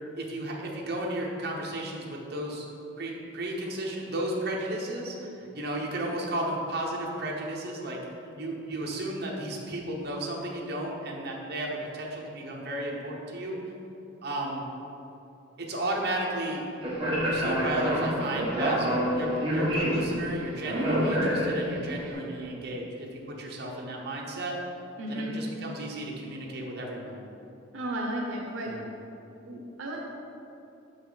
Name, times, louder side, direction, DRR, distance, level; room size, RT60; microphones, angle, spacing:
voice 1, 0.2-2.7 3.0-8.0 8.4-13.6 14.2-14.6 15.6-16.6 17.2-24.6 25.1-27.2 28.6-28.8, right 1 dB, 50° right, -2 dB, 0.9 m, -34 dB
Speech, 16.8-21.9, equal, 25° right, 1.4 m, -27 dB
voice 2, 25.0-25.4 27.7-28.9 29.4-30.0, right 1 dB, 75° right, -1 dB, 0.7 m, -34 dB
6.4 x 5.4 x 4.0 m, 2.8 s
head